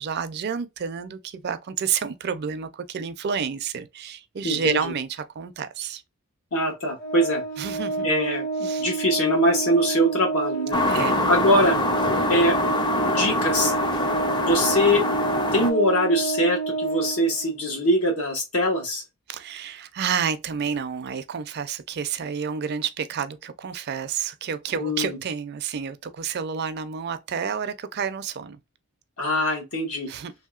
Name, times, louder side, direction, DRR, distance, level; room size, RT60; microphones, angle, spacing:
voice 1, 0.0-6.0 7.6-8.1 8.6-8.9 10.9-11.2 19.3-28.6 30.1-30.3, right 7 dB, 50° right, 0.4 m, -30 dB
voice 2, 4.4-4.9 6.5-7.4 8.0-10.8 11.3-11.8 12.3-12.7 13.0-13.7 14.4-15.0 15.5-19.0 24.7-25.2 29.2-30.1, equal, 85° left, 1.3 m, -23 dB
Organ, 7.0-17.7, right 4 dB, 45° left, 0.7 m, -29 dB
sound 1, 10.7-15.7, left 2 dB, 20° left, 0.3 m, -25 dB
3.0 x 2.8 x 2.3 m
head